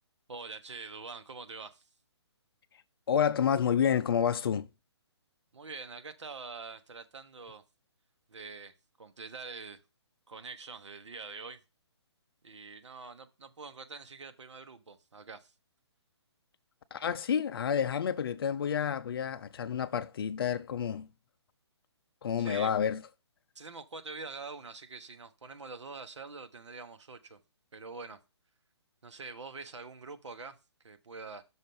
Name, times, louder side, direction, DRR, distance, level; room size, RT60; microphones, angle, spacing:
voice 1, 0.3-1.8 5.5-7.6 8.3-9.8 10.3-11.6 12.4-15.5 22.4-22.8 23.5-27.4 27.7-28.2 29.0-30.6 30.8-31.4, right 4 dB, 90° right, 1.3 m, -45 dB
voice 2, 3.1-4.7 16.9-21.1 22.2-23.0, left 8 dB, 55° left, 0.6 m, -29 dB
6.4 x 4.4 x 5.4 m
hypercardioid pair, 160°, 15 cm